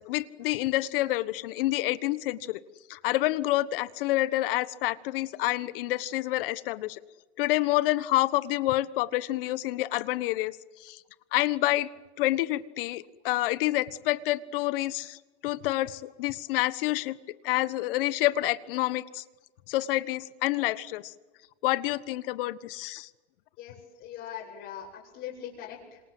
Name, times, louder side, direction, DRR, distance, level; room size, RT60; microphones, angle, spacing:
voice 1, 0.0-2.6 2.9-7.0 7.4-11.0 11.3-11.9 12.2-17.2 17.4-19.2 19.7-21.1 21.6-23.1, left 17 dB, 55° left, 15 dB, 1.4 m, -28 dB
voice 2, 23.6-26.0, left 10 dB, 40° left, -4 dB, 6.6 m, -41 dB
27.5 x 27.0 x 7.9 m, 1.2 s
supercardioid pair, 145°, 32 cm